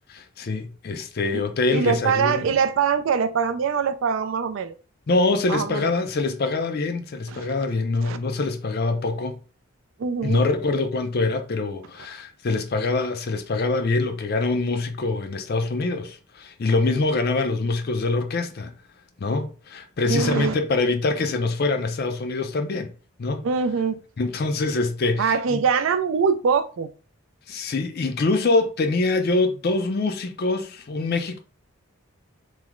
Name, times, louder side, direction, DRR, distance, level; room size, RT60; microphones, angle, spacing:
voice 1, 0.2-2.4 5.1-9.3 10.2-18.7 19.2-22.9 23.2-23.4 24.2-25.6 27.5-31.4, left 3 dB, 45° left, 0.4 m, -24 dB
voice 2, 1.7-4.8 5.5-5.9 7.3-7.5 8.0-8.2 10.0-10.5 20.1-20.6 23.4-24.0 25.2-26.9, right 6 dB, 60° right, 0.3 m, -23 dB
3.1 x 2.0 x 3.6 m
head